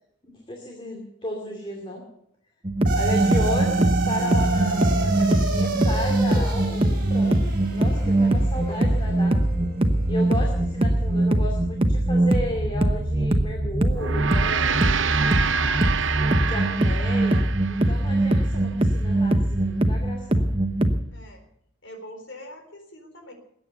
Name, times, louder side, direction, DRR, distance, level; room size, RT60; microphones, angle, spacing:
voice 1, 0.5-2.0 2.9-7.4 7.7-9.3 10.1-15.1 16.0-16.1 16.4-20.5, left 1 dB, 25° left, 1 dB, 2.5 m, -34 dB
sound 1, 2.6-21.0, right 1 dB, 30° right, 1.0 m, -22 dB
sound 2, 2.9-11.4, right 3 dB, 45° right, 4.5 m, -29 dB
Gong, 13.9-18.5, right 6 dB, 65° right, 0.8 m, -27 dB
voice 2, 21.1-21.4 21.8-23.3, left 1 dB, 65° left, 5 dB, 4.1 m, -43 dB
21.0 x 9.1 x 6.9 m, 0.71 s
head